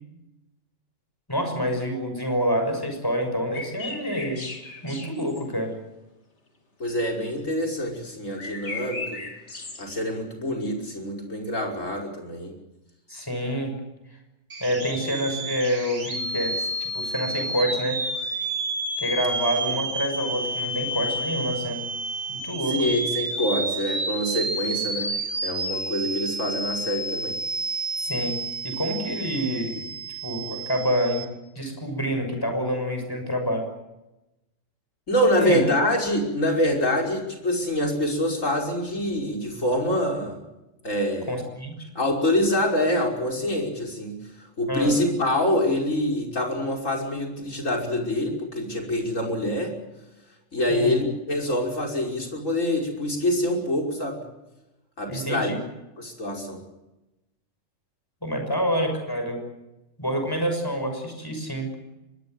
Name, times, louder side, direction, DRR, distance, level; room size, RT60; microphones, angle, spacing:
voice 1, 1.3-4.5 4.8-5.7 13.1-13.8 14.6-18.0 19.0-21.9 22.3-22.8 28.0-31.3 31.5-33.7 35.4-35.6 41.3-41.8 44.7-44.9 50.7-51.0 55.1-55.6 58.2-59.4 60.0-61.7, equal, 15° left, 4 dB, 6.3 m, -27 dB
sound 1, 3.5-5.5 8.3-9.9, left 3 dB, 60° left, 3.0 m, -37 dB
voice 2, 6.8-9.2 9.8-12.5 22.7-25.1 25.4-27.3 35.1-40.4 40.8-41.3 41.9-49.8 50.5-54.2 55.0-55.5 56.0-56.6, left 1 dB, 75° left, 1 dB, 5.9 m, -25 dB
sound 2, 14.5-31.2, right 2 dB, 70° right, 3.3 m, -30 dB
25.0 x 20.5 x 7.9 m, 0.98 s
omnidirectional pair, 1.3 m